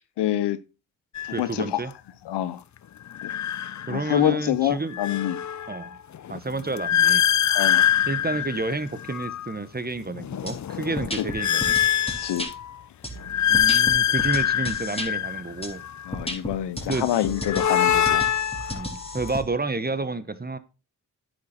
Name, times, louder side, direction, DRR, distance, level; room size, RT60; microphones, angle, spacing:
voice 1, 0.2-0.6 1.3-1.8 2.3-2.6 3.2-3.3 3.9-5.4 7.5-7.9 11.2-11.3 12.1-12.5 16.1-18.3 18.6-18.9, left 12 dB, 85° left, 0.7 m, -26 dB
sound 1, 1.2-1.4 3.1-4.3 4.7-9.5 10.1-12.7 13.2-16.1 17.1-19.4, left 10 dB, 45° left, 0.6 m, -24 dB
voice 2, 1.3-1.9 3.9-5.0 5.7-6.0 6.3-7.2 8.1-11.8 13.5-15.8 16.9-17.1 18.7-20.6, right 3 dB, 25° right, 1.1 m, -30 dB
sound 2, 10.5-10.6 11.0-12.5 13.0-15.1 15.6-15.7 16.1-19.4, equal, 15° left, 3.5 m, -34 dB
9.5 x 6.4 x 4.2 m
supercardioid pair, 40°, 40 cm